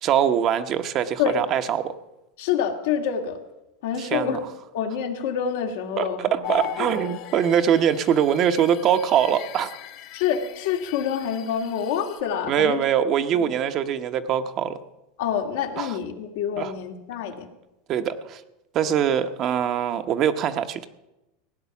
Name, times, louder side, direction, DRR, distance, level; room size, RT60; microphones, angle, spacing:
voice 1, 0.0-1.9 4.0-4.4 6.0-9.7 12.5-14.8 15.8-15.9 16.6-16.7 17.9-18.4 18.7-20.9, right 9 dB, 40° right, 9 dB, 0.9 m, -23 dB
voice 2, 2.4-3.4 3.8-4.4 4.7-7.1 10.1-12.8 13.3-13.5 15.2-17.5, left 8 dB, 80° left, 3 dB, 2.1 m, -27 dB
sound 1, 6.4-12.2, left 12 dB, 55° left, 2.0 m, -39 dB
16.5 x 9.4 x 7.1 m, 0.96 s
supercardioid pair, 125°, 0 cm